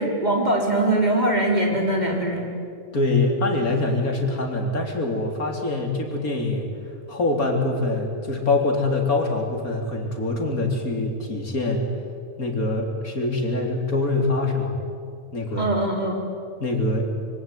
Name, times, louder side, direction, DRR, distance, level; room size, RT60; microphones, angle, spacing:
voice 1, 0.0-2.5 15.6-16.2, right 1 dB, 30° right, 0 dB, 4.6 m, -22 dB
voice 2, 2.9-6.7 7.1-11.9 12.4-14.8 15.3-15.7 16.6-17.1, left 2 dB, 85° left, 2 dB, 4.1 m, -24 dB
25.0 x 24.5 x 9.4 m, 2.4 s
omnidirectional pair, 1.5 m